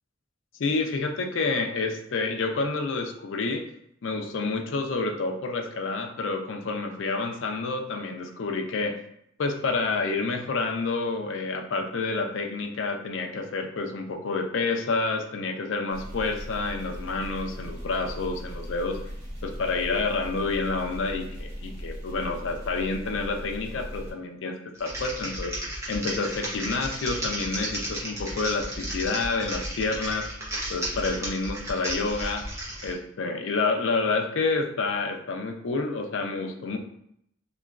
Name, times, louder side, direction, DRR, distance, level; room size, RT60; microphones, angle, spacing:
voice 1, 0.6-3.7 4.0-9.0 9.4-19.0 19.4-25.6 25.9-30.3 30.7-32.5 32.8-36.8, left 3 dB, 75° left, 4 dB, 0.4 m, -29 dB
sound 1, 15.9-24.1, equal, 55° right, 0.8 m, -38 dB
Typing, 24.8-32.9, right 1 dB, 15° right, 0.7 m, -34 dB
2.9 x 2.3 x 2.3 m, 0.73 s
head